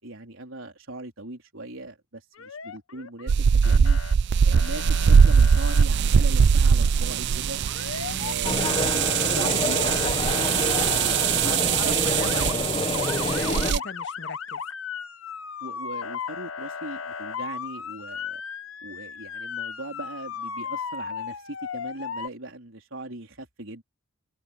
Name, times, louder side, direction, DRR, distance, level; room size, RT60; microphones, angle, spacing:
voice 1, 0.0-4.0 4.4-7.6 8.1-8.7 9.3-11.2 11.6-11.9 13.4-13.8 15.6-18.4 18.8-23.8, right 2 dB, 75° right, 4.1 m, -39 dB
Motor vehicle (road) / Siren, 2.3-3.3 3.6-4.1 4.5-5.8 7.7-8.3 8.6-11.6 12.0-12.5 12.9-22.3, left 6 dB, 85° left, 1.1 m, -36 dB
sound 1, 3.3-13.8, right 6 dB, 55° right, 0.4 m, -21 dB
voice 2, 8.1-8.4 11.4-14.6, left 4 dB, 60° left, 1.9 m, -40 dB
sound 2, 8.4-13.7, left 2 dB, 25° left, 1.1 m, -28 dB
open air
head